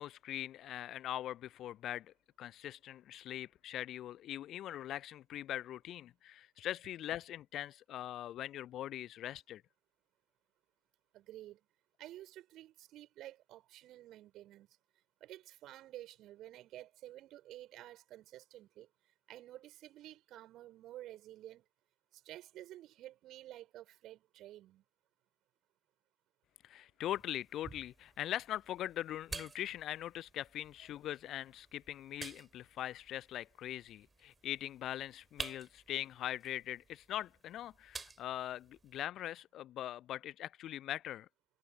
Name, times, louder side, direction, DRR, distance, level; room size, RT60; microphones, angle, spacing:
voice 1, 0.0-9.6 26.6-41.3, left 12 dB, 30° left, 0.3 m, -42 dB
voice 2, 11.1-11.6 12.0-14.7 15.2-18.9 19.3-21.6 22.1-24.8, right 14 dB, 35° right, 5.4 m, -51 dB
sound 1, 27.0-39.0, right 4 dB, 10° right, 7.1 m, -52 dB
figure-of-eight pair, 90°, 0 cm